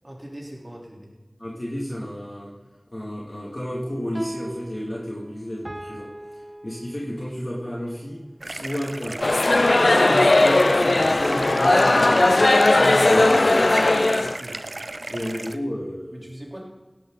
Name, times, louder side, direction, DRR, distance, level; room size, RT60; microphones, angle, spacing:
voice 1, 0.0-1.1 14.2-14.6 15.1-15.2 16.1-16.6, right 1 dB, 35° right, -3 dB, 4.2 m, -40 dB
voice 2, 1.4-2.5 2.9-6.1 6.6-9.2 10.0-13.6 15.1-16.2, equal, 45° left, -5 dB, 3.0 m, -32 dB
sound 1, 4.0-7.4 11.6-14.1, right 1 dB, 50° right, 1.3 m, -39 dB
sound 2, 8.4-15.6, right 2 dB, 75° right, 0.5 m, -34 dB
sound 3, 9.2-14.4, left 2 dB, 85° left, 0.5 m, -17 dB
17.0 x 11.5 x 4.3 m, 1.2 s
wide cardioid pair, 40°, 0 cm